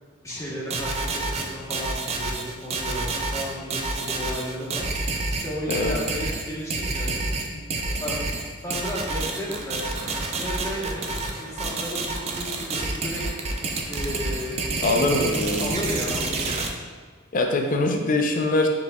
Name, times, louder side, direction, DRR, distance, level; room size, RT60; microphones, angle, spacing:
voice 1, 0.2-4.9 5.3-7.4 7.8-8.2 8.6-9.9 10.4-13.2 13.9-15.2 15.6-16.7, equal, 15° left, -6 dB, 1.0 m, -34 dB
sound 1, 0.7-16.7, right 3 dB, 35° right, 0.4 m, -28 dB
sound 2, 9.9-15.7, right 1 dB, 70° right, 1.4 m, -45 dB
voice 2, 14.8-15.8 17.3-18.7, left 2 dB, 45° left, 3 dB, 0.4 m, -23 dB
6.6 x 3.1 x 2.2 m, 1.5 s
head